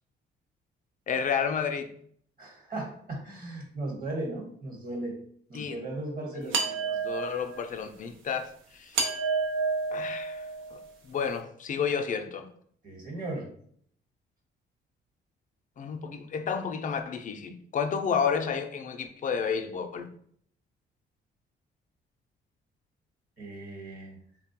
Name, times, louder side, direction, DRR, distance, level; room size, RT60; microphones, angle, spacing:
voice 1, 1.1-1.9 5.5-5.8 7.0-9.0 9.9-10.5 10.7-10.8 11.1-12.5 15.8-20.1, left 6 dB, 40° left, 0.4 m, -31 dB
voice 2, 2.4-5.1 5.5-6.9 12.8-13.5 23.4-24.2, right 2 dB, 50° right, 1.2 m, -37 dB
sound 1, 6.5-7.6 8.9-10.8, right 4 dB, 85° right, 0.6 m, -30 dB
3.2 x 2.2 x 2.8 m
cardioid pair, 90°, 20 cm